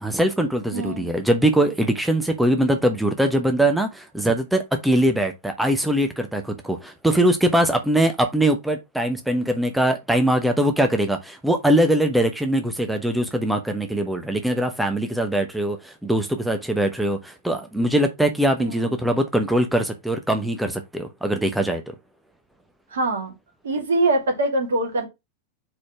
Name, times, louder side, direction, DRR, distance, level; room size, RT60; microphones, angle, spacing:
voice 1, 0.0-21.8, right 1 dB, 5° right, 0.9 m, -22 dB
voice 2, 0.7-1.1 18.6-19.1 22.9-23.3 23.6-25.1, right 2 dB, 65° right, 2.3 m, -23 dB
4.8 x 4.2 x 5.7 m
figure-of-eight pair, 90°, 0 cm